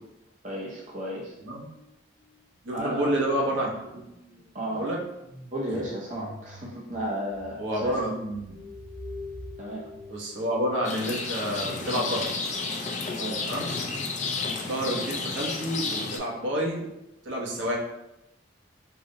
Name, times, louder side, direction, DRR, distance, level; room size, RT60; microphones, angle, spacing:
voice 1, 0.4-1.3 2.7-3.1 4.5-4.9 5.5-8.1 9.6-9.9 13.1-13.4, equal, 40° right, -4 dB, 0.6 m, -33 dB
sound 1, 1.6-1.9 2.2-11.0, right 1 dB, 75° left, 1.0 m, -48 dB
voice 2, 2.6-3.7 4.7-5.0 7.6-8.5 10.1-12.3 13.5-13.7 14.6-16.8 17.2-17.8, equal, 75° right, -3 dB, 0.8 m, -29 dB
sound 2, 8.4-13.1, left 6 dB, 5° left, 0.7 m, -47 dB
Rain, 10.8-16.2, left 4 dB, 35° left, 0.4 m, -31 dB
3.9 x 2.0 x 3.8 m, 0.90 s
head